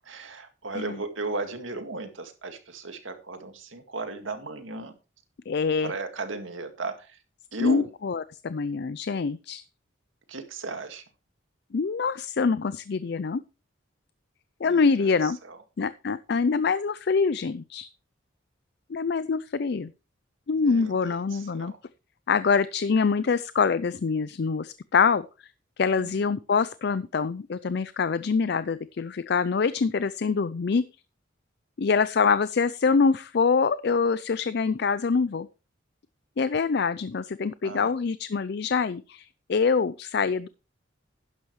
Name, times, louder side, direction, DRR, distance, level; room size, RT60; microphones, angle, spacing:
voice 1, 0.0-4.9 5.8-7.2 7.5-7.8 10.3-11.0 14.6-15.6 20.6-21.8 26.0-26.3 37.6-37.9, right 3 dB, 85° right, 6 dB, 2.1 m, -36 dB
voice 2, 5.5-5.9 7.6-9.6 11.7-13.4 14.6-15.4 15.8-17.9 18.9-19.9 20.5-21.7 22.3-25.5 25.8-30.8 31.8-35.5 36.4-40.5, left 5 dB, 55° left, 16 dB, 0.4 m, -25 dB
11.5 x 10.5 x 3.2 m, 0.31 s
head